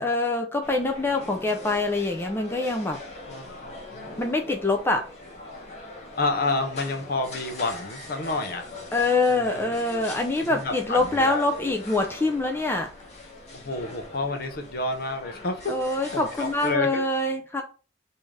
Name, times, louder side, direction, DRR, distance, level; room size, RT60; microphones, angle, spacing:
voice 1, 0.0-3.0 4.2-5.0 8.9-12.9 15.7-17.6, left 2 dB, 15° left, 3 dB, 0.4 m, -25 dB
sound 1, 0.6-16.7, left 2 dB, 40° left, 1.0 m, -42 dB
voice 2, 3.3-4.1 6.2-8.7 9.3-9.7 10.4-11.4 13.5-15.7 16.1-17.0, left 2 dB, 60° left, 6 dB, 0.6 m, -29 dB
3.2 x 2.7 x 3.5 m, 0.35 s
head